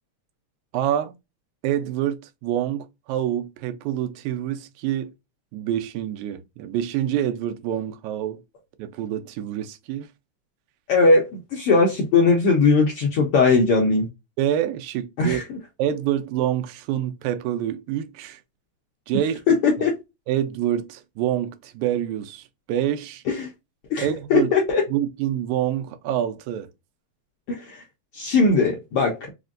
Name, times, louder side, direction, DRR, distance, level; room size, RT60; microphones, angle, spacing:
voice 1, 0.7-1.2 1.6-5.1 5.5-8.4 8.8-10.1 14.4-15.4 15.8-18.4 19.1-19.4 20.3-23.2 24.0-24.5 24.9-26.7, right 11 dB, 85° right, 2.0 m, -26 dB
voice 2, 10.9-14.1 15.2-15.6 19.5-19.9 23.3-23.5 23.9-24.8 27.5-27.8 28.1-29.2, left 4 dB, 70° left, 1.4 m, -19 dB
4.9 x 2.1 x 2.4 m
omnidirectional pair, 3.4 m